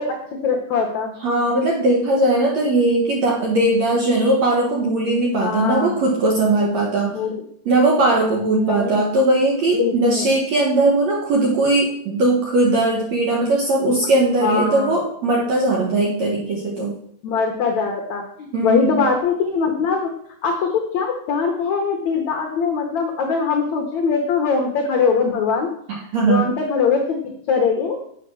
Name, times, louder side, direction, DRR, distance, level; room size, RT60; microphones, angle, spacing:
voice 1, 0.0-1.1 5.4-6.0 7.1-7.3 8.6-9.1 9.8-10.3 13.9-14.0 14.4-15.0 17.2-20.1 20.4-25.7 26.2-27.0 27.5-28.0, left 5 dB, 85° left, 2 dB, 1.6 m, -22 dB
voice 2, 1.2-7.1 7.7-16.9 18.5-19.0 26.1-26.4, right 2 dB, 60° right, -1 dB, 1.9 m, -19 dB
9.1 x 7.7 x 6.3 m, 0.69 s
omnidirectional pair, 5.1 m